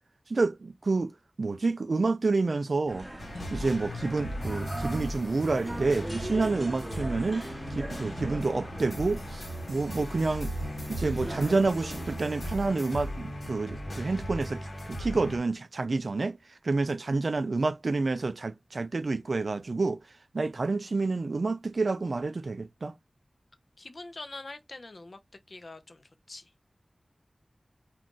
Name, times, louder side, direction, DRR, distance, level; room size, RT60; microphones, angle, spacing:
voice 1, 0.3-1.1 1.4-3.1 3.5-7.5 7.7-10.5 10.9-14.6 14.9-16.4 16.6-20.0 20.3-22.9, right 3 dB, 70° right, 0.3 m, -28 dB
sound 1, 2.9-12.2, right 1 dB, 20° right, 0.7 m, -41 dB
sound 2, 3.2-15.4, equal, 80° left, 1.3 m, -37 dB
voice 2, 23.8-25.2 25.5-26.5, left 2 dB, 60° left, 0.5 m, -44 dB
2.5 x 2.3 x 3.7 m
wide cardioid pair, 70°, 0 cm